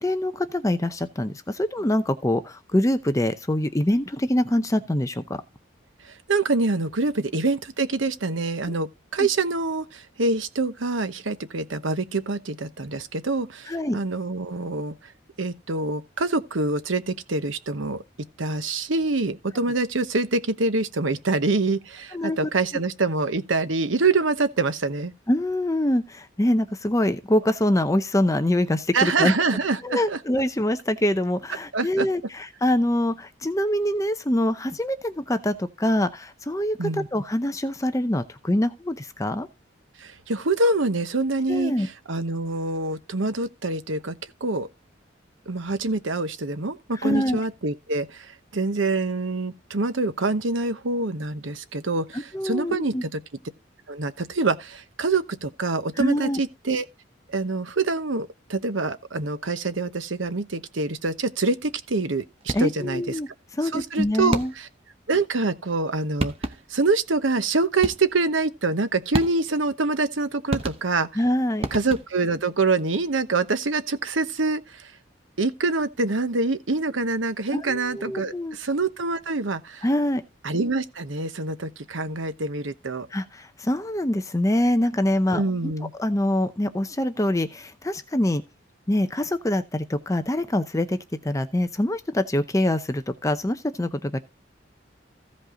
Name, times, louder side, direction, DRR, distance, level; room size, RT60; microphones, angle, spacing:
voice 1, 0.0-5.2 8.7-8.8 9.2-9.3 13.7-14.0 22.1-22.4 25.3-29.3 29.8-39.5 41.5-41.9 47.0-47.4 52.1-53.0 56.0-56.4 62.5-63.3 63.6-64.5 71.2-71.7 77.5-78.6 79.8-80.2 83.1-85.7 86.0-88.4 88.9-91.0 91.2-94.2, left 1 dB, 15° left, 0.6 m, -24 dB
voice 2, 6.0-14.9 15.4-18.0 18.4-25.1 28.9-30.2 31.7-32.1 36.8-37.1 40.0-41.7 42.1-44.1 44.4-44.7 45.5-53.2 53.9-56.8 57.3-63.1 63.7-64.7 65.1-66.3 66.7-71.1 71.7-74.9 75.4-79.8 80.4-83.1 85.3-85.9, right 3 dB, 90° right, 1.0 m, -25 dB
sound 1, 62.4-62.9 64.3-64.8 65.9-66.0 66.2-66.8 67.8-68.3 69.1-69.7 70.5-71.2 71.6-72.3, right 2 dB, 30° right, 0.9 m, -31 dB
15.5 x 5.3 x 3.8 m
head